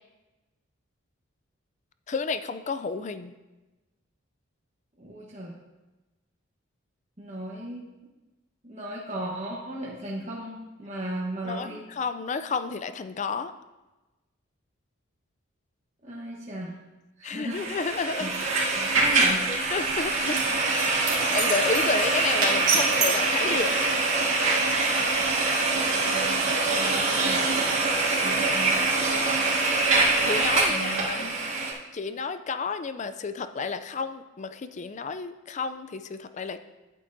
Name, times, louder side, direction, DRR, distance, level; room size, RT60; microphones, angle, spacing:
voice 1, 2.1-3.3 11.4-13.5 17.2-18.3 19.7-20.4 20.8-23.7 26.6-26.9 29.8-31.3 31.9-36.6, left 4 dB, 35° left, 11 dB, 0.3 m, -31 dB
voice 2, 5.0-5.5 7.2-7.8 8.6-11.8 16.0-16.7 17.2-17.8 18.2-18.3 18.7-19.5 25.9-27.4 28.2-28.8 30.7-31.4, right 1 dB, 30° right, -5 dB, 1.0 m, -36 dB
sound 1, 17.5-31.7, right 3 dB, 65° right, 2.2 m, -24 dB
sound 2, 18.3-18.6 20.3-23.3, right 4 dB, 85° right, 2.4 m, -29 dB
11.0 x 8.4 x 2.6 m, 1.1 s
head